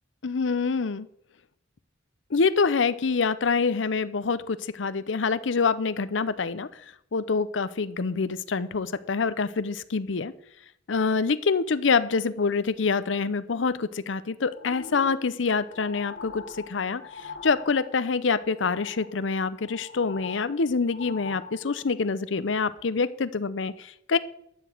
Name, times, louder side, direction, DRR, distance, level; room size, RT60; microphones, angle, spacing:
voice 1, 0.2-1.1 2.3-6.7 7.1-10.3 10.9-24.2, left 4 dB, 75° left, 15 dB, 0.6 m, -26 dB
sound 1, 14.5-18.2 18.5-19.2 19.5-22.0 22.5-22.6, left 4 dB, 60° left, 1.4 m, -43 dB
12.5 x 5.0 x 8.8 m, 0.72 s
head